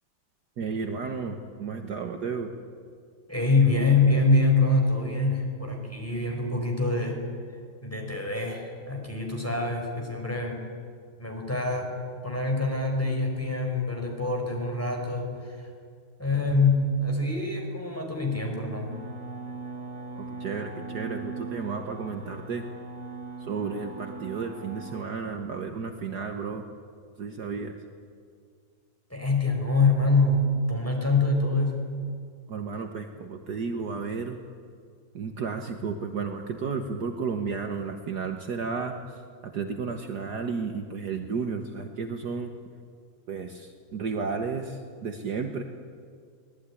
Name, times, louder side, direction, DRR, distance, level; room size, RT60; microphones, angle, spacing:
voice 1, 0.6-2.5 20.1-22.7 23.4-26.6 27.2-27.7 32.5-34.4 35.1-42.5 43.3-45.6, right 5 dB, 55° right, 5 dB, 1.7 m, -33 dB
voice 2, 3.3-7.2 7.8-10.6 11.2-11.9 12.2-15.7 16.2-19.0 29.1-31.9, left 3 dB, 5° left, 1 dB, 4.8 m, -25 dB
sound 1, 18.9-25.0, right 3 dB, 40° right, 2.3 m, -40 dB
24.0 x 19.0 x 9.9 m, 2.2 s
omnidirectional pair, 2.2 m